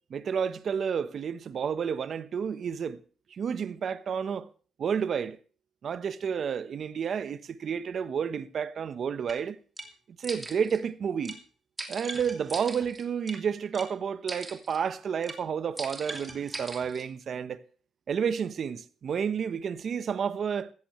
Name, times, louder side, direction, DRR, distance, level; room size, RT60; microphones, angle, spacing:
voice 1, 0.1-3.0 3.3-4.5 4.8-5.4 5.8-9.6 10.2-11.4 11.9-17.6 18.1-20.7, right 7 dB, 55° right, 1.0 m, -31 dB
sound 1, 9.3-9.4 9.8-9.9 10.2-10.8 11.2-11.4 11.8-13.4 13.7-13.9 14.3-14.8 15.2-15.4 15.8-17.0, right 2 dB, 20° right, 2.8 m, -40 dB
15.5 x 14.5 x 3.2 m
cardioid pair, 90°, 0 cm